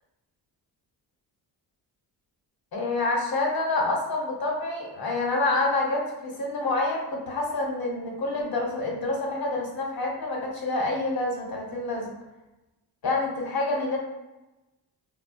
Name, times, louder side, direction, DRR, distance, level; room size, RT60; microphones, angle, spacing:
voice 1, 2.7-12.1 13.0-14.0, left 2 dB, 60° left, -1 dB, 1.1 m, -27 dB
3.7 x 2.1 x 2.6 m, 1.0 s
cardioid pair, 80°, 42 cm